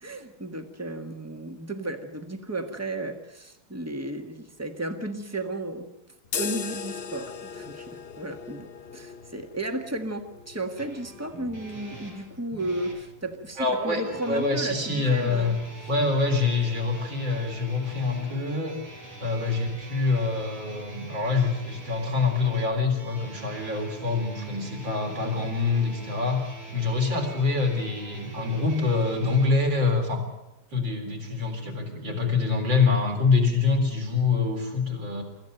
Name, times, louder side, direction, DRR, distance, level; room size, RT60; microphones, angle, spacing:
voice 1, 0.0-5.9 6.4-15.6, right 1 dB, 10° right, 5 dB, 1.4 m, -34 dB
sound 1, 6.2-14.0, left 6 dB, 70° left, 0.5 m, -39 dB
sound 2, 10.8-13.0 14.0-29.5, right 3 dB, 90° right, 7.6 m, -42 dB
voice 2, 13.6-14.0 14.3-15.6 15.9-18.8 19.2-26.4 26.7-30.2 30.7-35.2, left 4 dB, 60° right, 2 dB, 4.7 m, -25 dB
24.5 x 14.5 x 8.0 m, 0.96 s
omnidirectional pair, 2.4 m